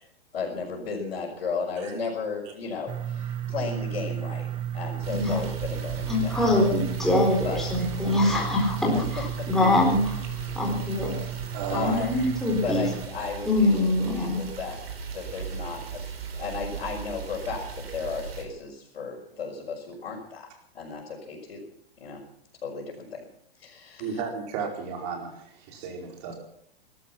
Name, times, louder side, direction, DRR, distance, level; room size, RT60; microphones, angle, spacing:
voice 1, 0.3-4.5 4.7-6.3 6.6-6.8 7.4-7.6 8.9-9.0 10.9-11.0 11.7-12.3 12.6-14.8 15.1-17.7 17.9-20.5 20.7-21.6 22.0-22.2 22.6-23.2 23.6-24.1, left 5 dB, 85° left, -6 dB, 5.2 m, -34 dB
sound 1, 2.9-13.1, right 10 dB, 15° right, 1.0 m, -34 dB
sound 2, 5.0-18.4, right 6 dB, 80° right, 4.2 m, -37 dB
voice 2, 5.1-5.4 6.1-10.0 10.5-11.1 11.7-12.9 13.5-14.4, left 2 dB, ahead, -2 dB, 4.2 m, -24 dB
voice 3, 11.5-12.1 24.0-26.3, right 6 dB, 40° right, 2 dB, 4.6 m, -34 dB
18.5 x 13.0 x 5.8 m, 0.67 s
hypercardioid pair, 155°, 30 cm